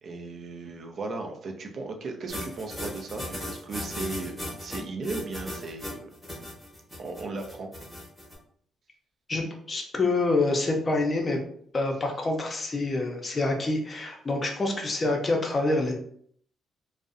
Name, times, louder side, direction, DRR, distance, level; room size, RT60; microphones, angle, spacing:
voice 1, 0.0-6.1 7.0-7.7, right 3 dB, 55° right, 3 dB, 0.4 m, -36 dB
sound 1, 2.3-8.3, left 1 dB, 5° left, 0.8 m, -37 dB
voice 2, 9.3-11.4 11.7-15.9, left 2 dB, 30° left, 2 dB, 0.5 m, -26 dB
2.5 x 2.0 x 2.5 m, 0.64 s
cardioid pair, 90°, 0 cm